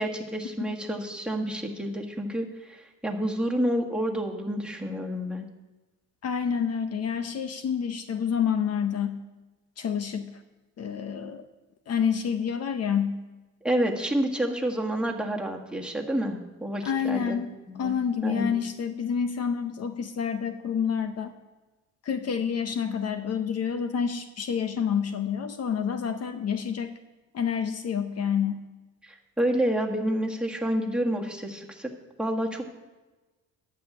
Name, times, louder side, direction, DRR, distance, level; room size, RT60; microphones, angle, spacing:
voice 1, 0.0-5.5 13.6-17.4 17.7-17.9 18.2-18.6 29.0-31.9 32.2-32.7, right 1 dB, 5° right, 0 dB, 1.7 m, -29 dB
voice 2, 6.2-9.2 9.8-10.3 10.8-11.4 11.9-13.2 16.8-21.3 22.0-27.0 27.3-28.6, left 7 dB, 55° left, 8 dB, 0.8 m, -28 dB
11.5 x 5.7 x 8.2 m, 1.2 s
cardioid pair, 90°, 30 cm